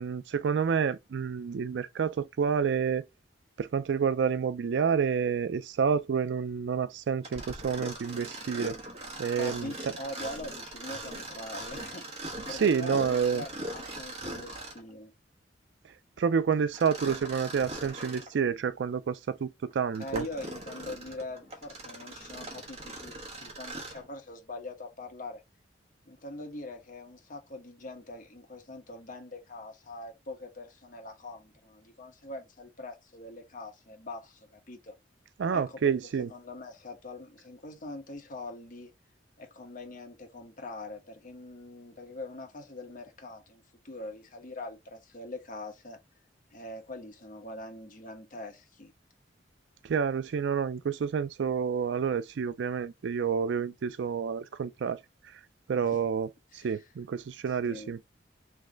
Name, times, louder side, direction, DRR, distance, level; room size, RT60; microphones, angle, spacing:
voice 1, 0.0-3.0 3.6-8.8 9.2-9.9 12.5-13.4 16.2-20.3 35.4-36.3 49.8-55.0 55.7-58.0, right 6 dB, 70° right, 0.4 m, -29 dB
Mechanisms, 7.2-14.9 16.7-18.3 18.9-19.0 19.7-24.1, right 1 dB, 35° right, 1.2 m, -41 dB
voice 2, 9.4-15.1 20.0-25.4 26.1-34.9 35.5-35.8 36.3-38.9 39.4-46.0 46.5-48.9 55.7-55.9 56.5-56.8 57.6-57.9, left 2 dB, 50° left, 1.1 m, -43 dB
3.4 x 3.1 x 3.8 m
head